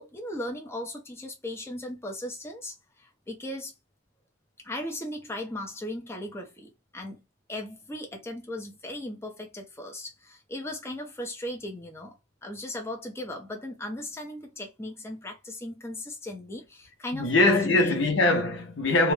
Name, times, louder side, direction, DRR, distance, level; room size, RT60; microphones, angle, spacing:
voice 1, 0.0-3.7 4.6-7.2 7.5-17.9, left 1 dB, 15° left, 0.5 m, -37 dB
voice 2, 17.1-19.1, left 2 dB, 70° left, 0.7 m, -22 dB
2.3 x 2.1 x 3.1 m
head